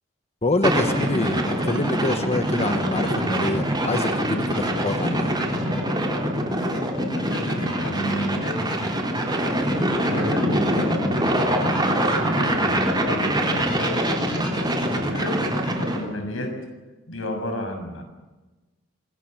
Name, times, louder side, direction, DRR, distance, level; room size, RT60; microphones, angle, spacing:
voice 1, 0.4-5.3, left 2 dB, 35° left, 7 dB, 1.2 m, -26 dB
sound 1, 0.6-16.0, right 1 dB, 20° right, 3.8 m, -24 dB
voice 2, 7.1-8.9 9.9-14.1 14.8-16.6 17.1-18.0, equal, 85° left, 5 dB, 6.9 m, -32 dB
26.0 x 21.0 x 7.9 m, 1.2 s
head